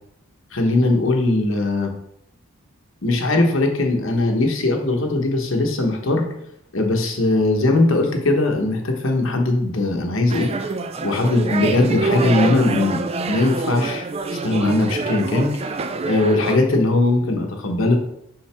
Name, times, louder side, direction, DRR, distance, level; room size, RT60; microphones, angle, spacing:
voice 1, 0.5-1.9 3.0-6.3 6.7-10.5 11.0-14.0 14.4-15.5 16.1-18.0, left 2 dB, 60° left, 3 dB, 1.0 m, -19 dB
sound 1, 10.3-16.6, right 3 dB, 25° right, 0.3 m, -26 dB
5.7 x 5.4 x 3.4 m, 0.77 s
head